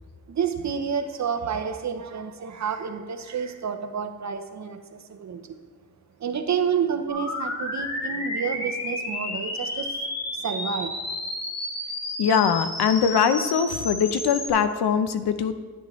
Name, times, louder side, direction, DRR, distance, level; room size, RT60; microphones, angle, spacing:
voice 1, 0.3-5.4 6.2-10.0 10.4-11.0, right 7 dB, 45° right, 7 dB, 0.7 m, -29 dB
sound 1, 7.1-14.5, left 1 dB, 45° left, 1.6 m, -32 dB
voice 2, 12.2-15.5, left 7 dB, 80° left, 11 dB, 0.6 m, -22 dB
10.0 x 9.7 x 3.1 m, 1.4 s
wide cardioid pair, 180°, 38 cm